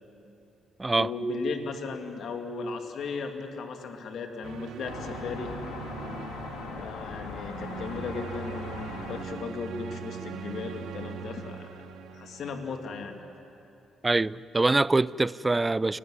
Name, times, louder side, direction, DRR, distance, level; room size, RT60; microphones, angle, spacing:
voice 1, 1.0-5.5 6.8-11.7 12.1-13.2, left 4 dB, 65° left, 4 dB, 2.5 m, -36 dB
sound 1, 4.4-13.3, right 8 dB, 80° right, 1.1 m, -41 dB
sound 2, 4.9-9.2, left 5 dB, 85° left, 1.9 m, -40 dB
voice 2, 14.0-16.0, right 2 dB, 20° right, 20 dB, 0.4 m, -24 dB
29.5 x 12.5 x 9.8 m, 2.9 s
cardioid pair, 90°, 0 cm